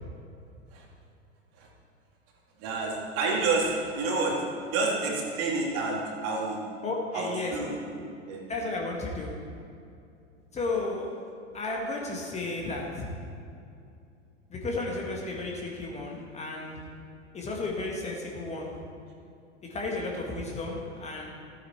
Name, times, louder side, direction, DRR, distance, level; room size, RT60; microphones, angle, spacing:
voice 1, 2.6-4.4 4.7-6.6 7.1-8.4, right 3 dB, 40° right, -2 dB, 2.6 m, -29 dB
voice 2, 6.8-7.5 8.5-9.3 10.5-11.3 11.5-13.1 14.5-16.7 17.3-18.7 19.7-21.3, left 2 dB, 20° left, -1 dB, 1.6 m, -33 dB
14.5 x 8.7 x 4.4 m, 2.5 s
figure-of-eight pair, 95°, 36 cm